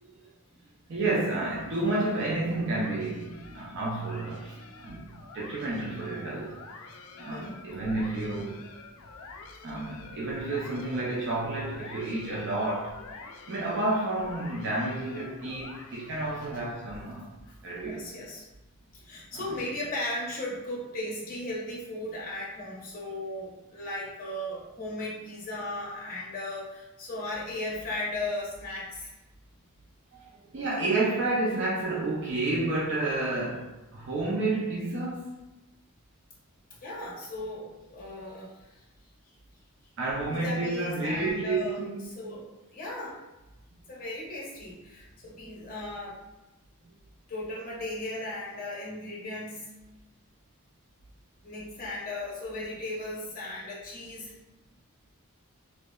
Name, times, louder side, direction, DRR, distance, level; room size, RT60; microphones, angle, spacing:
voice 1, 0.9-5.1 5.3-6.6 7.2-8.7 9.6-17.3 17.6-18.0 19.3-19.4 30.1-35.3 40.0-42.2, right 2 dB, 55° right, -5 dB, 0.4 m, -30 dB
sound 1, 1.6-16.7, left 4 dB, 75° left, 0.3 m, -48 dB
voice 2, 7.3-7.6 17.4-17.5 17.8-18.4 19.0-29.1 36.8-38.8 40.3-41.8 42.1-42.5 42.7-43.2 43.9-46.2 47.3-49.7 51.4-54.3, left 1 dB, 40° left, -5 dB, 0.7 m, -36 dB
2.8 x 2.1 x 2.2 m, 1.0 s
head